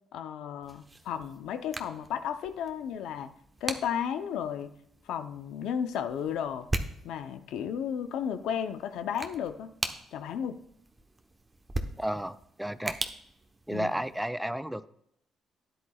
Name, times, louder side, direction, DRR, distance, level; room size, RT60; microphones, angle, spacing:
voice 1, 0.1-3.3 3.6-4.7 5.1-6.7 7.0-9.7 10.1-10.6 13.7-13.9, left 8 dB, 85° left, 10 dB, 0.7 m, -33 dB
sound 1, 0.6-14.3, right 2 dB, 20° right, 1.0 m, -41 dB
voice 2, 12.0-13.0 13.7-14.9, right 1 dB, 5° right, 14 dB, 0.4 m, -32 dB
12.5 x 10.0 x 2.4 m, 0.74 s
cardioid pair, 90°, 0 cm